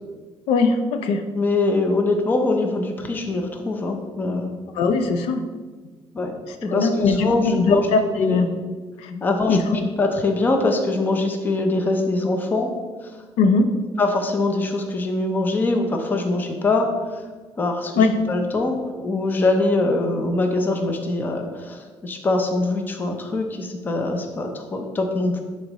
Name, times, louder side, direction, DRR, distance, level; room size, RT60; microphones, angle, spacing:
voice 1, 0.5-1.2 4.7-5.4 6.7-8.5 9.0-9.2 9.5-9.9 13.4-13.7 18.0-18.2, left 4 dB, 85° left, 7 dB, 0.6 m, -20 dB
voice 2, 1.3-4.6 6.1-6.4 6.6-7.9 8.2-8.4 9.2-12.7 13.0-13.1 14.0-17.2 17.6-25.4, left 2 dB, 20° left, 4 dB, 0.6 m, -23 dB
10.0 x 4.1 x 3.0 m, 1.4 s
cardioid pair, 175°, 10 cm